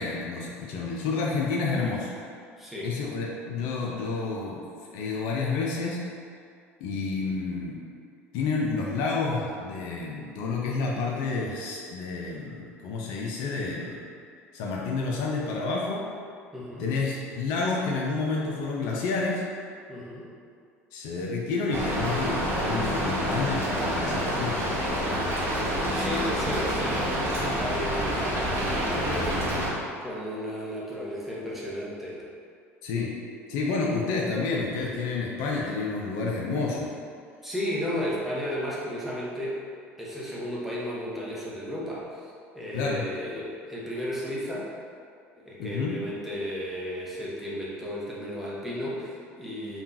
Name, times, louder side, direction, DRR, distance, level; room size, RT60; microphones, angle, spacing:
voice 1, 0.0-2.1 2.8-4.6 4.9-6.0 6.8-7.8 8.3-14.0 14.5-16.1 16.8-19.4 20.9-24.7 32.8-33.1 33.5-36.9 42.7-43.0 45.6-46.0, left 4 dB, 60° left, -2 dB, 0.4 m, -29 dB
voice 2, 2.6-2.9 16.5-16.9 19.9-20.3 25.9-29.3 30.0-32.2 37.4-39.6 40.0-44.7 45.4-49.8, equal, 5° right, -7 dB, 0.9 m, -34 dB
Rain, 21.7-29.7, equal, 30° right, 0.8 m, -27 dB
3.5 x 2.3 x 2.8 m, 2.3 s
figure-of-eight pair, 65°, 8 cm